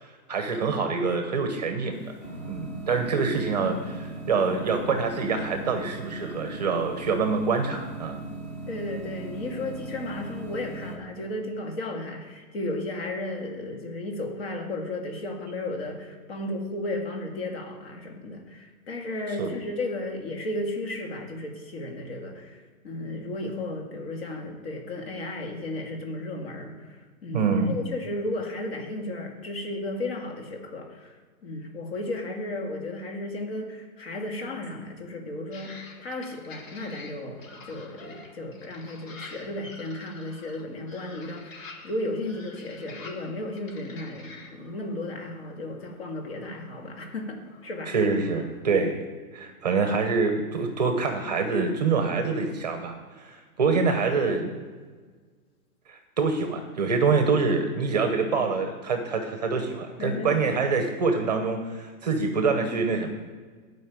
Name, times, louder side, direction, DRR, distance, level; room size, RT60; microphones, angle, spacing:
voice 1, 0.0-2.1 2.5-8.2 19.4-19.5 27.3-27.8 47.9-49.0 49.3-54.5 55.9-63.1, right 4 dB, 30° right, 6 dB, 0.9 m, -26 dB
sound 1, 1.9-11.0, right 2 dB, 10° left, 1.1 m, -38 dB
voice 2, 8.7-26.7 27.2-31.2 31.4-47.9 60.0-60.6, left 2 dB, 40° left, 2 dB, 2.2 m, -34 dB
sound 2, 35.5-48.6, left 3 dB, 60° left, 2.7 m, -48 dB
11.5 x 5.4 x 8.7 m, 1.5 s
hypercardioid pair, 175°, 44 cm